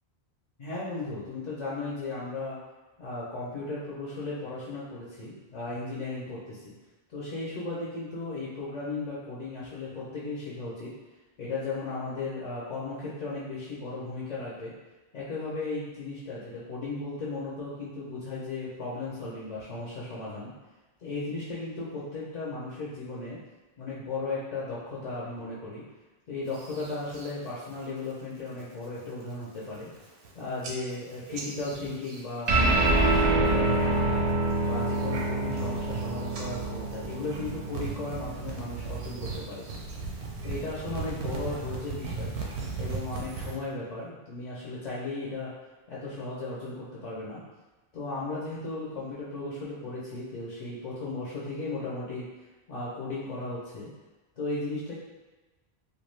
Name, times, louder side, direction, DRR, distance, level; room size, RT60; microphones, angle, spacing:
voice 1, 0.6-2.6 3.0-6.7 7.1-10.9 11.4-14.7 15.1-20.5 21.0-23.4 23.8-25.8 26.3-34.2 34.6-39.6 40.4-42.3 42.8-45.5 45.9-47.4 47.9-52.3 52.7-53.9 54.4-54.9, left 3 dB, 50° left, -7 dB, 0.6 m, -36 dB
sound 1, 26.5-27.3 27.7-28.1 28.5-28.9 29.3-29.4 29.6-30.3 30.6-33.2 33.5-34.0 34.5-43.6, right 4 dB, 90° right, 0.8 m, -38 dB
sound 2, 32.5-39.2, right 2 dB, 55° right, 0.5 m, -26 dB
2.5 x 2.2 x 3.1 m, 1.2 s
omnidirectional pair, 1.1 m